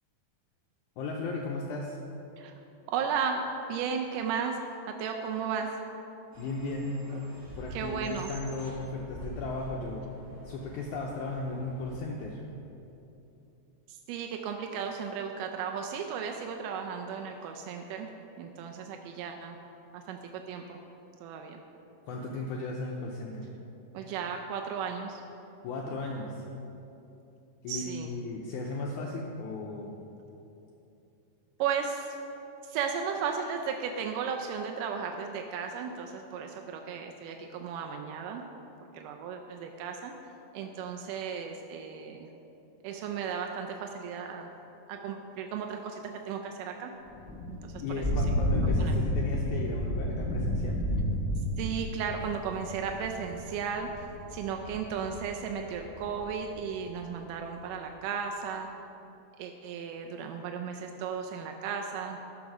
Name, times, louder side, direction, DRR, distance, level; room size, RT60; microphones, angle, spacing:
voice 1, 1.0-2.0 6.4-6.9 7.5-10.1 10.4-12.4 22.0-23.5 25.6-26.4 27.6-29.9 47.8-50.8, left 2 dB, 85° left, -1 dB, 1.7 m, -35 dB
voice 2, 2.9-4.6 4.9-5.8 7.7-8.3 13.9-18.1 18.4-19.6 19.9-20.8 21.2-21.6 23.9-25.2 27.7-28.1 31.6-32.2 32.7-38.4 38.9-40.1 40.5-42.3 42.8-44.5 44.9-46.9 47.5-47.8 48.3-48.4 48.8-49.0 51.6-53.9 54.3-58.7 59.4-62.2, right 6 dB, 85° right, 3 dB, 1.9 m, -35 dB
sound 1, 6.3-12.0, equal, 40° right, 1.3 m, -46 dB
Thunder / Rain, 47.1-56.6, equal, 15° right, 1.0 m, -31 dB
13.0 x 4.8 x 6.0 m, 2.9 s
omnidirectional pair, 4.3 m